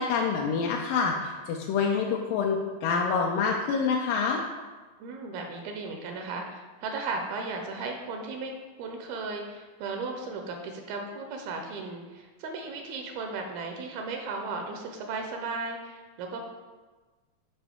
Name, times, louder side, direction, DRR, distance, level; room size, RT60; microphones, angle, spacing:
voice 1, 0.0-4.4, left 5 dB, 80° left, -1 dB, 1.9 m, -27 dB
voice 2, 5.0-16.4, right 3 dB, 80° right, 3 dB, 2.5 m, -36 dB
11.0 x 5.2 x 3.6 m, 1.3 s
omnidirectional pair, 4.5 m